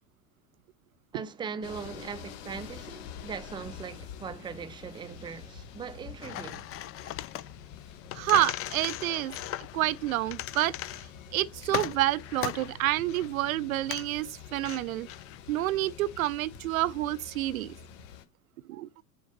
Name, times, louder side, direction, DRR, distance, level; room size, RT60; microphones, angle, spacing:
voice 1, 1.1-6.7 7.0-7.2, right 6 dB, 10° right, 0.6 m, -40 dB
sound 1, 1.6-18.2, left 7 dB, 55° left, 1.3 m, -47 dB
sound 2, 6.2-16.3, left 13 dB, 30° left, 0.6 m, -39 dB
voice 2, 8.1-9.3 9.7-10.7 11.3-15.1 15.5-17.7 18.7-19.0, right 15 dB, 70° right, 0.6 m, -28 dB
7.3 x 3.8 x 6.6 m
hypercardioid pair, 85°, 43 cm